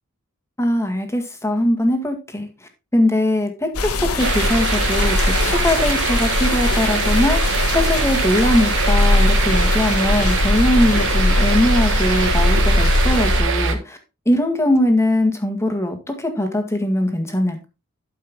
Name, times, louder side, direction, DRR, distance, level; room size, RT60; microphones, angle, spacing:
voice 1, 0.6-2.5 2.9-14.0 14.3-17.7, left 1 dB, 15° left, 5 dB, 1.8 m, -21 dB
sound 1, 3.7-13.4, left 2 dB, 85° left, 1.4 m, -20 dB
sound 2, 4.2-13.8, right 5 dB, 60° right, 1.5 m, -23 dB
12.0 x 5.4 x 3.6 m, 0.28 s
head